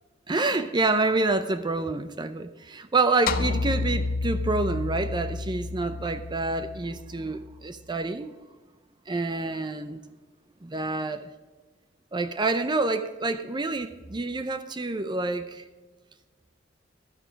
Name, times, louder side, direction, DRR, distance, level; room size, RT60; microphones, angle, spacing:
voice 1, 0.3-8.3 9.1-10.0 10.6-11.3 12.1-15.6, right 3 dB, 25° right, 10 dB, 0.6 m, -27 dB
sound 1, 3.3-7.7, left 3 dB, 50° left, 0.6 m, -30 dB
12.5 x 10.0 x 5.1 m, 1.3 s
head